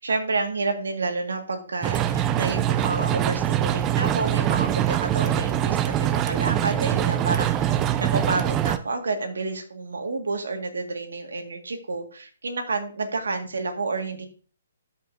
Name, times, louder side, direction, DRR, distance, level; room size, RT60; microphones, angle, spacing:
voice 1, 0.0-14.3, right 3 dB, 85° right, 5 dB, 1.7 m, -29 dB
sound 1, 1.8-8.8, right 11 dB, 20° right, 0.5 m, -23 dB
13.0 x 5.3 x 2.6 m, 0.40 s
hypercardioid pair, 145°, 0 cm